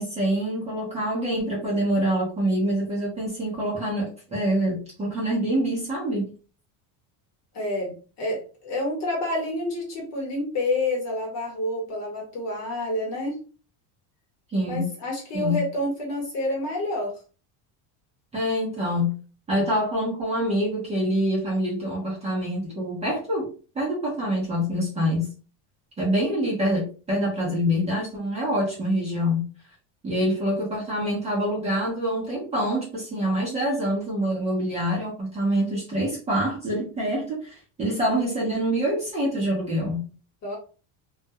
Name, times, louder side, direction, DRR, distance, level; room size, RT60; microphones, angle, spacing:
voice 1, 0.0-6.3 14.5-14.9 15.3-15.6 18.3-19.1 19.5-23.5 23.7-25.3 26.0-29.5 30.0-40.1, equal, 15° right, -6 dB, 0.6 m, -25 dB
voice 2, 7.5-13.4 14.6-17.2 40.4-40.6, left 1 dB, 40° left, -1 dB, 1.1 m, -28 dB
2.3 x 2.1 x 2.7 m, 0.36 s
cardioid pair, 165°, 41 cm